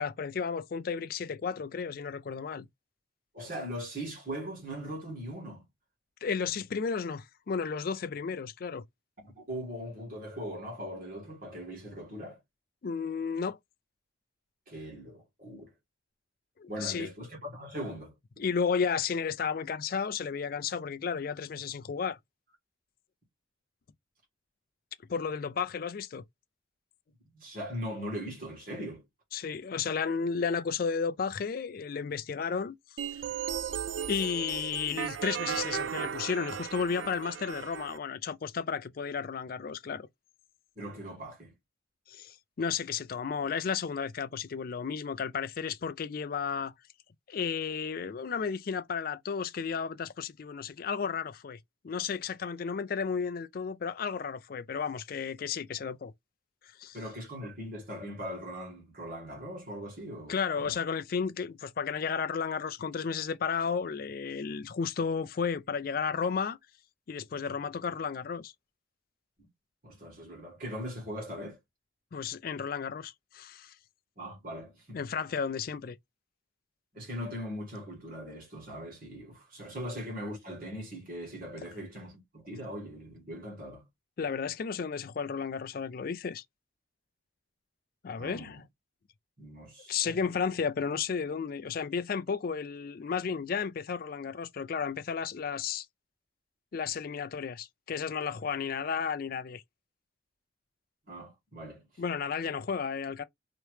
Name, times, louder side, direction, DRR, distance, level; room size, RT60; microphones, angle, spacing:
voice 1, 0.0-2.7 6.2-8.8 12.8-13.6 16.6-17.1 18.4-22.2 25.1-26.2 29.3-33.0 34.1-40.1 42.1-46.7 47.3-51.6 51.8-56.1 56.8-57.0 60.3-66.6 67.1-68.5 72.1-73.7 74.9-76.0 84.2-86.4 88.0-88.6 89.9-95.9 96.7-99.6 102.0-103.2, left 6 dB, 50° left, 0.4 m, -33 dB
voice 2, 3.3-5.6 9.2-12.4 14.7-15.7 16.7-18.4 27.3-29.0 40.8-41.5 56.9-60.7 69.4-69.5 69.8-71.6 74.2-75.0 76.9-83.8 88.1-88.6 89.4-90.2 101.1-101.9, equal, 45° right, 1.8 m, -40 dB
sound 1, 33.0-38.0, right 8 dB, 70° right, 0.3 m, -36 dB
2.9 x 2.9 x 3.2 m
head